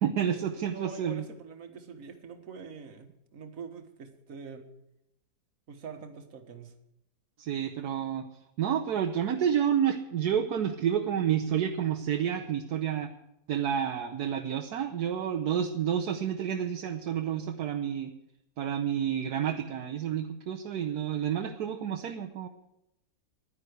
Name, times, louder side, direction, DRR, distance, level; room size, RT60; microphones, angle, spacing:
voice 1, 0.0-1.2 7.4-8.3 8.6-13.1 13.5-18.1 18.6-22.5, right 9 dB, 70° right, 4 dB, 1.3 m, -29 dB
voice 2, 0.7-4.7 5.7-6.7, right 5 dB, 50° right, 7 dB, 1.8 m, -44 dB
11.0 x 10.0 x 8.0 m, 0.84 s
omnidirectional pair, 1.9 m